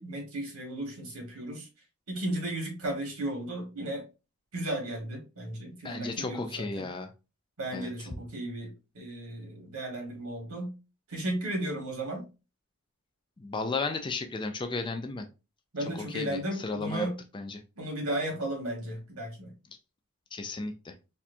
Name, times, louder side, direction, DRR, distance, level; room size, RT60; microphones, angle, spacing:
voice 1, 0.0-1.7 2.1-4.0 4.5-6.9 7.6-10.7 11.1-12.2 15.7-17.2 17.8-19.5, right 1 dB, 85° right, 1.6 m, -35 dB
voice 2, 5.8-7.1 7.7-7.9 13.4-15.3 16.1-17.1 17.3-17.6 20.3-20.9, left 3 dB, 20° left, 0.4 m, -34 dB
4.2 x 2.3 x 2.5 m
head